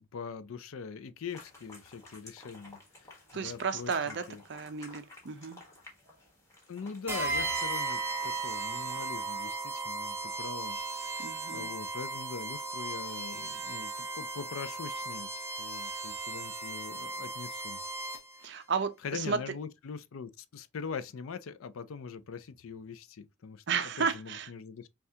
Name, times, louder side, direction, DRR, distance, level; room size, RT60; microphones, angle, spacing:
voice 1, 0.0-4.4 6.7-17.8 19.0-24.9, left 5 dB, 75° left, 0.5 m, -42 dB
sound 1, 1.3-9.2, left 2 dB, 15° left, 1.3 m, -53 dB
voice 2, 3.3-4.2 4.5-5.6 11.2-11.7 18.4-19.4 23.7-24.5, right 5 dB, 55° right, 0.5 m, -33 dB
sound 2, 7.1-18.4, right 3 dB, 10° right, 0.8 m, -36 dB
5.5 x 2.4 x 2.8 m
head